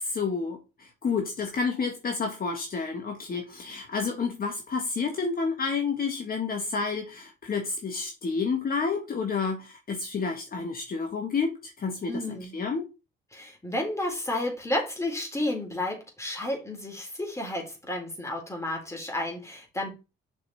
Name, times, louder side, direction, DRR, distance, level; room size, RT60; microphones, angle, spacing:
voice 1, 0.0-11.5 11.8-12.8, left 5 dB, 45° left, 2.0 m, -30 dB
voice 2, 12.1-12.6 13.3-19.9, left 1 dB, 15° left, 4.1 m, -32 dB
7.5 x 5.7 x 4.3 m
cardioid pair, 90°, 20 cm